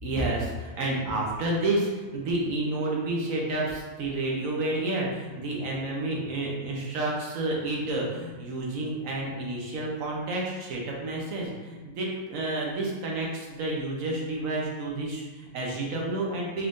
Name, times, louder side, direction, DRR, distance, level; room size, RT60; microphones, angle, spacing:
voice 1, 0.0-16.7, right 2 dB, 85° right, -2 dB, 1.2 m, -30 dB
4.2 x 3.5 x 2.5 m, 1.3 s
omnidirectional pair, 1.3 m